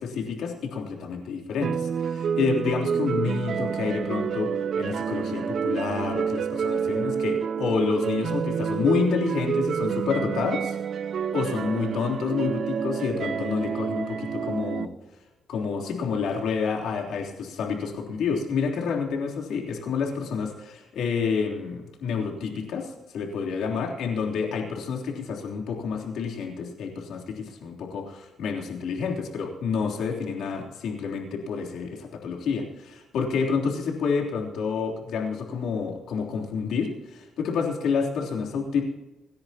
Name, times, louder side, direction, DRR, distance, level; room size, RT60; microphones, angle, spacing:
voice 1, 0.0-10.8 11.3-14.9 15.5-38.8, left 5 dB, 85° left, 0 dB, 3.3 m, -29 dB
sound 1, 1.6-14.9, right 7 dB, 55° right, 0.6 m, -28 dB
27.0 x 10.5 x 2.9 m, 1.1 s
cardioid pair, 120°, 0 cm